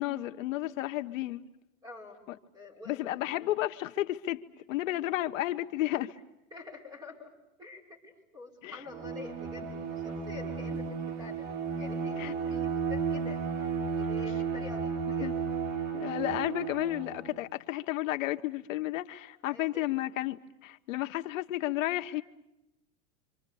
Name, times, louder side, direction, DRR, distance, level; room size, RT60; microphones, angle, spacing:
voice 1, 0.0-1.4 2.9-4.4 4.7-6.1 8.6-8.8 12.2-12.3 15.2-15.3 15.9-22.2, left 15 dB, 70° left, 8 dB, 1.0 m, -32 dB
voice 2, 1.8-2.3 2.5-3.4 6.1-6.2 6.5-7.3 7.6-13.4 13.9-15.4 19.5-19.9, left 3 dB, 10° right, 3 dB, 5.7 m, -47 dB
Bowed string instrument, 8.9-17.4, right 6 dB, 60° right, 3.0 m, -33 dB
28.0 x 26.0 x 6.9 m, 0.92 s
supercardioid pair, 150°, 40 cm